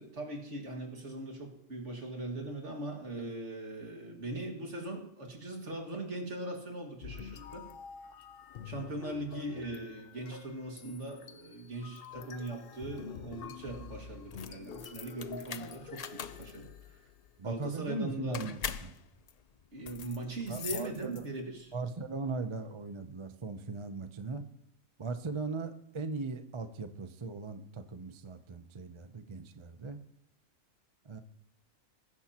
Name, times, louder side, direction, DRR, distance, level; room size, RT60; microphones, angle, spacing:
voice 1, 0.0-7.7 8.6-17.0 17.4-18.5 19.7-21.7, right 2 dB, 60° right, 1 dB, 2.4 m, -40 dB
sound 1, 7.0-17.3, left 7 dB, 55° left, 0.8 m, -47 dB
sound 2, 14.2-21.5, left 7 dB, 75° left, 0.3 m, -43 dB
voice 2, 17.4-18.9 20.5-21.3 21.7-24.4 25.0-30.0 31.0-31.2, right 3 dB, 30° right, 9 dB, 0.5 m, -39 dB
20.5 x 10.5 x 2.9 m, 0.76 s
omnidirectional pair, 1.4 m